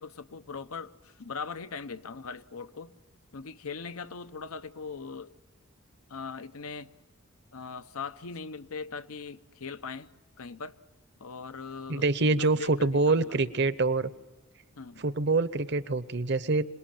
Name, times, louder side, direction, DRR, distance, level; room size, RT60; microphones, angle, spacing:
voice 1, 0.0-2.9 3.3-5.3 6.1-6.9 7.5-10.1 10.4-10.8 11.2-13.4 14.8-15.0, left 5 dB, 85° left, 0.8 m, -40 dB
voice 2, 11.9-14.1 15.0-16.7, right 3 dB, 50° right, 0.8 m, -25 dB
27.0 x 19.5 x 9.1 m
head